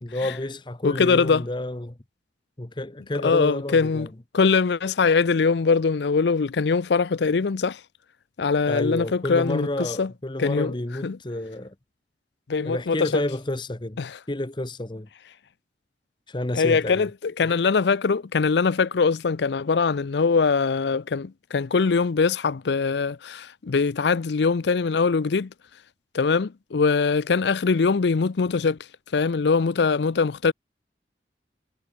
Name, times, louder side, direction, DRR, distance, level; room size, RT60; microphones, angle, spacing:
voice 1, 0.0-2.0 2.6-4.1 8.7-11.7 12.6-14.0 14.3-15.1 16.3-17.1, left 1 dB, 25° left, 1.0 m, -30 dB
voice 2, 0.8-1.4 3.2-4.1 4.3-7.8 8.4-10.1 10.4-10.7 11.0-11.2 12.5-13.2 14.0-14.2 16.5-25.5 26.1-28.8 29.1-30.5, left 4 dB, 75° left, 0.5 m, -22 dB
head